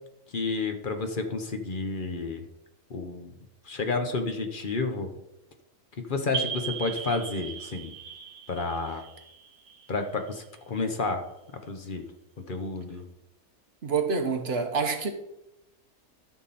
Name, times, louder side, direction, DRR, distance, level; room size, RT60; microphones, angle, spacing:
voice 1, 0.3-2.4 2.9-3.3 3.6-5.1 6.0-7.9 8.5-9.0 9.9-11.2 11.7-12.0 12.5-13.0, left 3 dB, 40° left, 6 dB, 1.1 m, -30 dB
sound 1, 6.3-10.8, right 6 dB, 80° right, 1.6 m, -38 dB
voice 2, 13.8-15.1, right 5 dB, 45° right, 5 dB, 1.2 m, -27 dB
13.5 x 6.1 x 4.2 m, 0.90 s
omnidirectional pair, 1.5 m